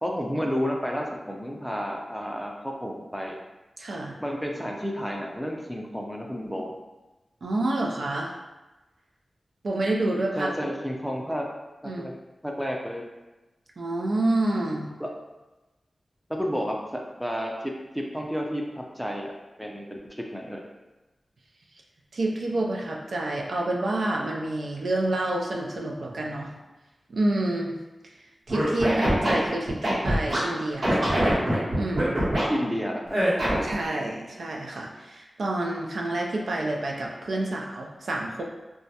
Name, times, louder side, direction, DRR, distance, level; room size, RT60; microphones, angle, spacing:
voice 1, 0.0-3.3 4.2-6.8 10.4-11.5 11.8-12.1 12.4-13.0 15.0-15.1 16.3-19.3 19.6-20.6 32.5-33.2, equal, ahead, 0 dB, 0.4 m, -31 dB
voice 2, 3.8-4.1 7.4-8.3 9.6-10.5 11.8-12.0 13.8-14.9 22.1-26.5 27.1-27.8 28.5-31.2 31.8-32.2 33.6-38.4, right 2 dB, 80° right, 0 dB, 0.3 m, -28 dB
Scratching (performance technique), 28.5-30.4 30.8-32.4 33.1-33.7, right 1 dB, 60° right, 1.0 m, -23 dB
2.2 x 2.0 x 2.7 m, 1.1 s
cardioid pair, 55°, 0 cm